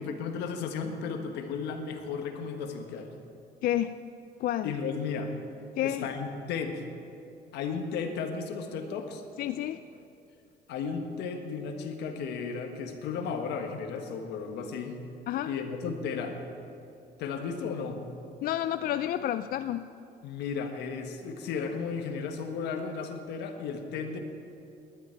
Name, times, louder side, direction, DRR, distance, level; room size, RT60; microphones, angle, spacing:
voice 1, 0.0-3.1 4.6-5.3 5.8-6.8 7.5-9.2 10.7-15.0 15.5-16.4 17.2-18.1 20.2-24.2, left 5 dB, 85° left, 5 dB, 1.5 m, -34 dB
voice 2, 3.6-4.0 4.4-4.7 5.8-6.1 9.4-9.8 15.3-15.5 18.4-19.9, left 12 dB, 60° left, 11 dB, 0.4 m, -30 dB
18.5 x 11.5 x 4.6 m, 2.8 s
cardioid pair, 110°, 17 cm